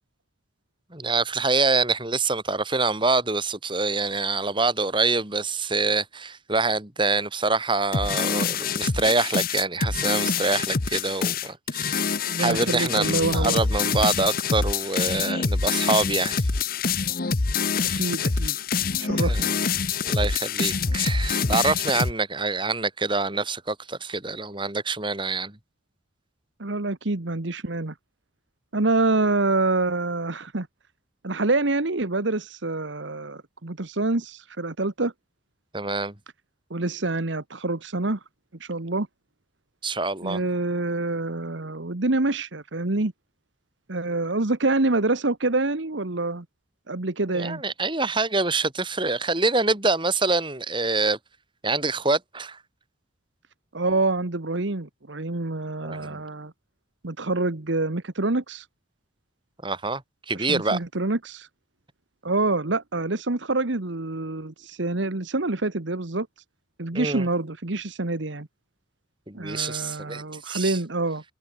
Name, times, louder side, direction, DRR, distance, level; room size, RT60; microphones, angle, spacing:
voice 1, 0.9-16.4 17.8-18.1 19.2-19.5 20.0-25.6 35.7-36.1 39.8-40.4 47.3-51.2 51.6-52.6 55.8-56.2 59.6-60.0 60.3-60.8 66.9-67.2 69.3-70.8, right 3 dB, 25° right, 3.2 m, -26 dB
sound 1, 7.9-22.1, left 5 dB, 50° left, 0.9 m, -25 dB
voice 2, 12.2-13.6 17.9-18.6 19.0-19.5 26.6-27.9 28.7-30.7 31.2-35.1 36.7-38.2 38.6-39.1 40.2-43.1 43.9-46.4 46.9-47.6 53.7-56.5 57.0-58.6 60.3-61.5 62.2-66.3 66.8-68.5 69.3-71.2, right 2 dB, 75° right, 1.4 m, -26 dB
head